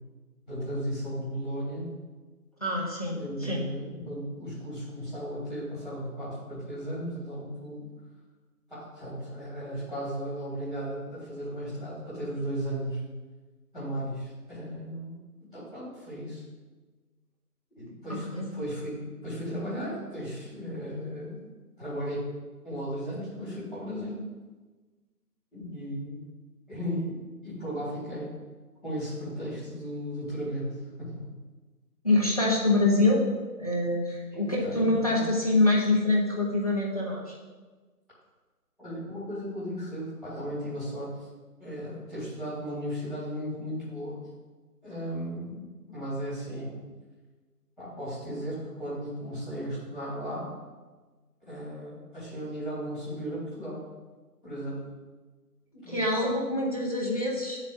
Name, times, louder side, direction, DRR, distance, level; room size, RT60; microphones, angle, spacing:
voice 1, 0.5-1.9 3.1-7.9 8.7-13.0 13.7-16.4 17.7-21.4 21.8-22.3 22.6-24.2 25.5-26.2 26.7-28.3 28.8-31.2 34.3-35.3 38.8-41.2 41.6-44.2 44.8-46.8 47.8-50.5 51.5-53.8 54.4-54.9 55.7-56.0, equal, ahead, -22 dB, 2.2 m, -35 dB
voice 2, 2.6-3.6 18.1-18.5 32.0-33.3 33.6-37.4 55.9-57.6, left 2 dB, 25° left, -4 dB, 1.0 m, -25 dB
10.5 x 7.4 x 2.7 m, 1.3 s
figure-of-eight pair, 170°, 48 cm